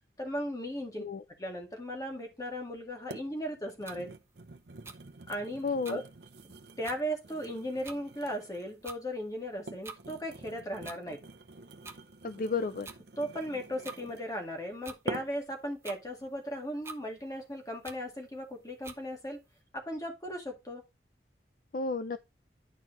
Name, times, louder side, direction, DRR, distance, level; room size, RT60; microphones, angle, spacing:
voice 1, 0.2-1.0 1.4-4.1 5.3-6.0 6.8-11.2 13.2-19.4 19.7-20.8, equal, 20° left, 2.0 m, -37 dB
sound 1, 2.3-2.4 3.1-3.3 3.6-8.8 9.4-14.4 15.1-15.5 16.0-16.3, right 3 dB, 70° right, 0.8 m, -46 dB
sound 2, 3.9-4.0 4.8-5.0 5.8-6.0 6.5-6.6 6.8-7.0 7.8-8.0 8.8-9.0 9.8-10.0 10.8-11.0 11.8-12.0 12.8-13.0 13.8-14.0 14.8-15.0 15.8-16.0 16.8-17.0 17.8-18.0 18.8-19.0, right 4 dB, 15° right, 0.7 m, -45 dB
voice 2, 5.6-6.0 12.2-12.9 21.7-22.2, left 4 dB, 50° left, 0.4 m, -32 dB
10.5 x 4.6 x 4.1 m
head